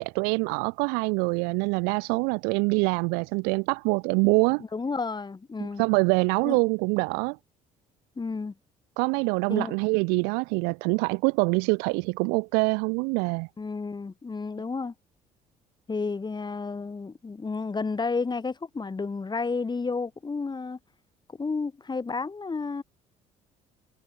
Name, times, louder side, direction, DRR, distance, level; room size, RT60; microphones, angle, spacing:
voice 1, 0.0-4.6 5.6-7.4 9.0-13.5, right 34 dB, 85° right, 0.6 m, -25 dB
voice 2, 4.7-5.8 6.4-6.6 8.2-8.5 9.5-9.7 13.6-14.9 15.9-20.8 21.4-22.8, left 4 dB, 25° left, 6.7 m, -31 dB
supercardioid pair, 75°, 16 cm